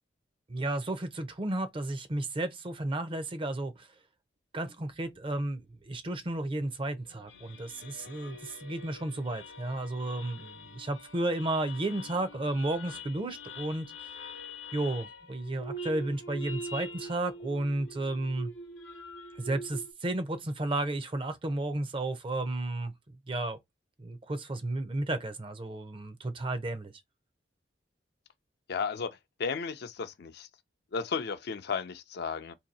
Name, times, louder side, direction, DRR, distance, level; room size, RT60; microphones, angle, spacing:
voice 1, 0.5-3.9 4.5-14.2 14.7-18.5 19.4-22.9 23.3-23.6 24.0-26.9, right 2 dB, 30° right, 0.6 m, -33 dB
sound 1, 6.6-19.9, equal, 85° left, 0.8 m, -44 dB
voice 2, 28.7-30.5 30.9-32.5, left 5 dB, 60° left, 0.5 m, -34 dB
2.8 x 2.7 x 4.0 m
head